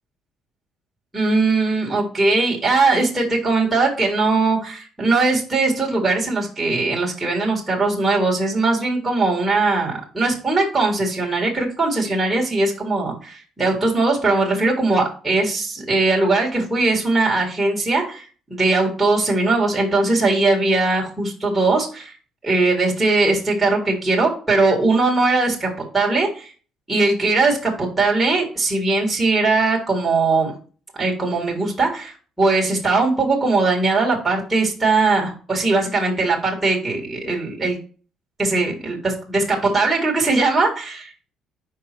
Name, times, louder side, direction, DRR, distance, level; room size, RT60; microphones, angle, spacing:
voice 1, 1.1-18.2 18.5-22.1 22.4-26.5 26.9-30.5 31.0-37.8 38.4-41.3, right 3 dB, 5° right, -3 dB, 1.8 m, -20 dB
5.4 x 4.7 x 4.5 m, 0.38 s
cardioid pair, 165°, 0 cm